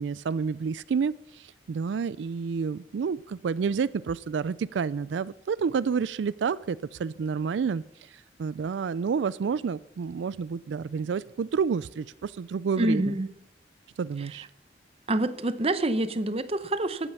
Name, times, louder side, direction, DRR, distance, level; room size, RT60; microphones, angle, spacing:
voice 1, 0.0-7.8 8.1-13.1 14.0-14.5, right 6 dB, 85° right, 19 dB, 0.4 m, -29 dB
voice 2, 12.8-13.3 14.2-14.3 15.1-17.1, right 1 dB, 35° right, 13 dB, 0.7 m, -27 dB
14.0 x 9.0 x 5.6 m, 0.79 s
head